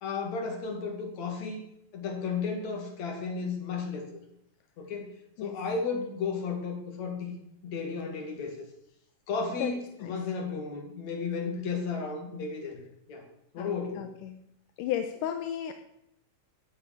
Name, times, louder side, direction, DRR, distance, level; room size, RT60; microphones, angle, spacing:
voice 1, 0.0-1.6 1.9-4.1 4.8-5.1 5.4-7.3 7.6-8.7 9.3-12.8 13.1-13.3 13.5-14.1, left 5 dB, 60° left, 3 dB, 3.6 m, -33 dB
voice 2, 14.0-14.4 14.8-15.7, left 10 dB, 80° left, 7 dB, 2.4 m, -33 dB
14.0 x 9.3 x 6.6 m, 0.78 s
omnidirectional pair, 3.8 m